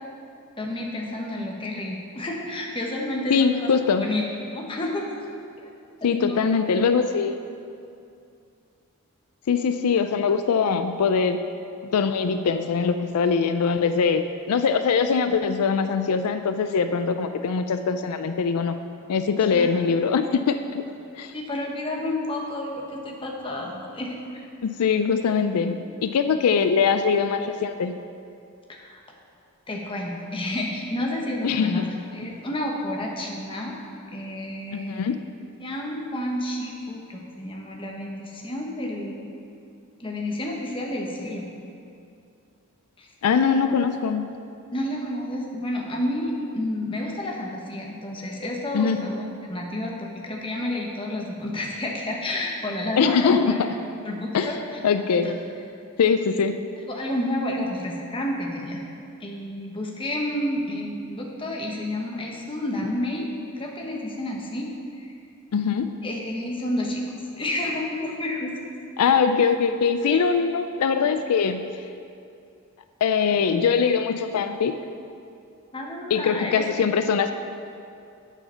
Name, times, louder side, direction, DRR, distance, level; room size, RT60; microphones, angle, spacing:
voice 1, 0.6-3.7 4.0-4.2 4.5-5.2 6.0-6.5 19.5-19.8 21.3-24.2 28.7-29.0 29.7-33.7 34.1-35.0 35.6-39.3 40.0-41.5 43.0-43.1 44.7-49.2 49.5-53.6 54.0-54.6 55.2-55.3 56.9-58.8 59.2-63.3 63.6-64.7 65.0-65.1 66.0-67.0 67.4-68.5 70.1-70.2 71.0-71.1 73.3-73.4 75.7-76.7, left 1 dB, 25° left, -1 dB, 1.1 m, -30 dB
voice 2, 3.3-4.1 6.0-7.3 9.5-11.4 11.9-18.7 19.1-20.8 21.2-21.3 24.6-27.9 31.4-31.9 32.2-32.3 34.7-35.2 43.2-44.4 48.7-49.1 53.0-53.7 54.3-54.5 54.8-55.3 56.0-56.5 65.5-65.9 69.0-71.7 73.0-74.7 76.1-77.3, left 6 dB, 85° left, 9 dB, 0.4 m, -22 dB
7.9 x 7.2 x 5.6 m, 2.5 s
head